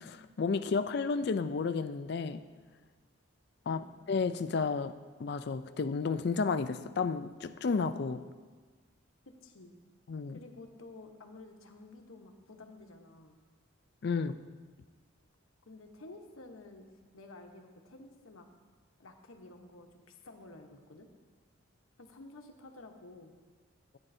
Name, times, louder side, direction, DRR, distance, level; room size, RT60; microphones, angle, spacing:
voice 1, 0.0-2.4 3.7-3.8 4.1-4.9 5.2-8.2 10.1-10.4 14.0-14.4, left 4 dB, 50° left, 11 dB, 0.4 m, -32 dB
voice 2, 9.4-9.7 10.3-13.4 15.6-18.5 19.0-21.1 22.0-23.3, left 2 dB, 80° left, 4 dB, 1.0 m, -52 dB
15.0 x 8.8 x 2.7 m, 1.4 s
head